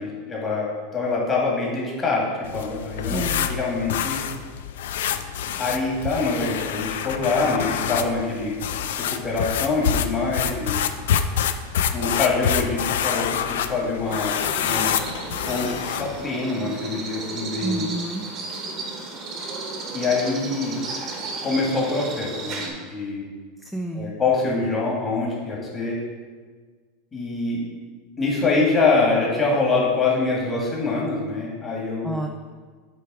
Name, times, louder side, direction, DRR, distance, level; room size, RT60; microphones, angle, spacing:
voice 1, 0.0-4.2 5.6-8.5 9.0-10.8 11.9-14.9 15.5-17.9 19.9-20.7 21.4-23.2 23.9-26.0 27.1-27.6 28.2-32.2, left 3 dB, 20° left, -3 dB, 1.7 m, -25 dB
sound 1, 2.4-16.2, left 8 dB, 85° left, 0.4 m, -27 dB
voice 2, 3.1-3.5 17.6-18.2 23.7-24.2 32.0-32.3, right 1 dB, ahead, 2 dB, 0.3 m, -29 dB
sound 2, 14.1-22.7, right 3 dB, 35° right, 1.0 m, -34 dB
7.9 x 3.3 x 4.8 m, 1.5 s
supercardioid pair, 150°, 0 cm